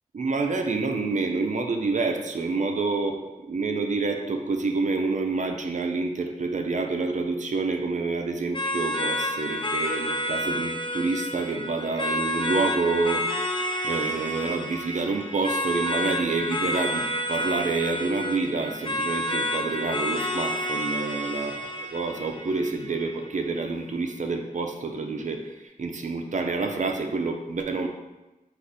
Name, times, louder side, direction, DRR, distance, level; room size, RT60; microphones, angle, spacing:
voice 1, 0.1-21.6 21.9-27.9, right 3 dB, 60° right, 4 dB, 0.5 m, -28 dB
sound 1, 8.5-23.5, left 1 dB, 35° left, 0.6 m, -30 dB
4.8 x 2.4 x 4.0 m, 1.0 s
wide cardioid pair, 65°, 14 cm